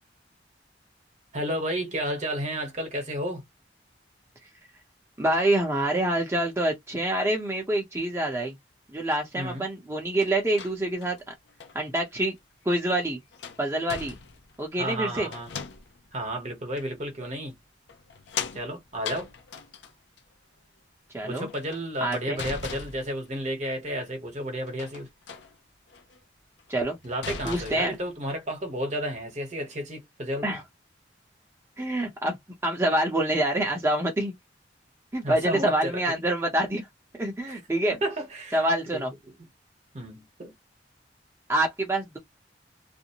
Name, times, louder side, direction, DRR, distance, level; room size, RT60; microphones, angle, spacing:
voice 1, 1.3-3.5 9.3-9.7 14.8-15.5 16.1-17.6 18.5-19.3 21.2-25.1 27.0-30.6 35.2-36.2 37.5-37.6 37.9-38.7 38.9-39.1 39.4-39.5 39.9-40.5, equal, 40° right, 1.1 m, -32 dB
voice 2, 5.2-8.5 8.9-11.3 11.7-12.3 12.6-13.2 13.6-14.2 14.6-15.3 21.1-21.5 22.0-22.4 26.7-27.0 27.4-28.0 30.4-30.6 31.8-32.4 32.6-34.3 35.1-36.9 37.1-38.0 38.5-39.1 41.5-42.2, right 1 dB, 15° right, 0.8 m, -26 dB
sound 1, 10.2-11.8 12.7-12.8 13.3-14.6 15.3-16.1 16.8-16.9 17.9-20.2 21.4-23.5 24.7-25.5 25.9-26.2 26.6-26.7 27.0-28.1, left 6 dB, 70° left, 0.5 m, -39 dB
2.5 x 2.1 x 2.8 m
head